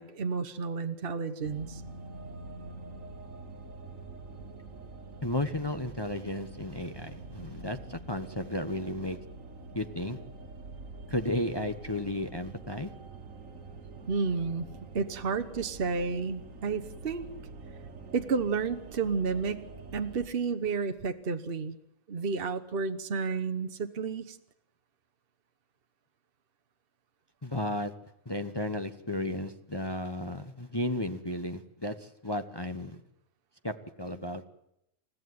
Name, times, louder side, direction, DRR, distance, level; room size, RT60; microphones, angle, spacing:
voice 1, 0.0-1.8 14.1-14.7 14.9-17.3 18.1-19.6 19.9-21.7 22.1-24.4, right 5 dB, 45° right, 8 dB, 1.2 m, -31 dB
sound 1, 1.4-20.3, right 3 dB, 70° right, 1.9 m, -46 dB
voice 2, 5.2-9.2 9.7-10.2 11.1-12.9 27.4-27.9 28.2-33.0 33.6-34.4, left 1 dB, 20° left, 7 dB, 1.1 m, -33 dB
29.0 x 15.0 x 9.5 m, 0.80 s
omnidirectional pair, 1.4 m